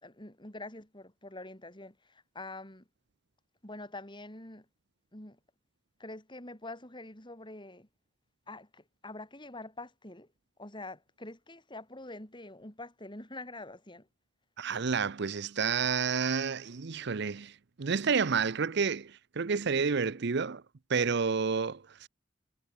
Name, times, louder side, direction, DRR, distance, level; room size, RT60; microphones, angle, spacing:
voice 1, 0.0-2.9 3.6-4.7 5.1-5.4 6.0-7.9 8.5-10.3 10.6-14.1, left 2 dB, 25° left, 5.3 m, -45 dB
voice 2, 14.6-20.6 20.9-22.1, right 5 dB, 60° right, 0.7 m, -30 dB
head